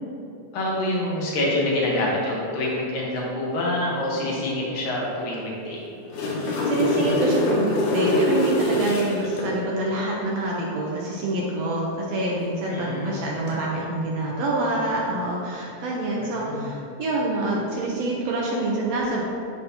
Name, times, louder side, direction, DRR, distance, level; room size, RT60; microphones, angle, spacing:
voice 1, 0.5-5.8 12.7-13.1 16.2-16.7, left 1 dB, 55° left, -4 dB, 1.8 m, -26 dB
sound 1, 5.9-9.5 13.3-13.5, left 1 dB, 85° left, 2.5 m, -23 dB
voice 2, 6.6-19.2, right 2 dB, 70° right, -3 dB, 1.7 m, -26 dB
11.0 x 4.0 x 2.8 m, 2.6 s
omnidirectional pair, 3.5 m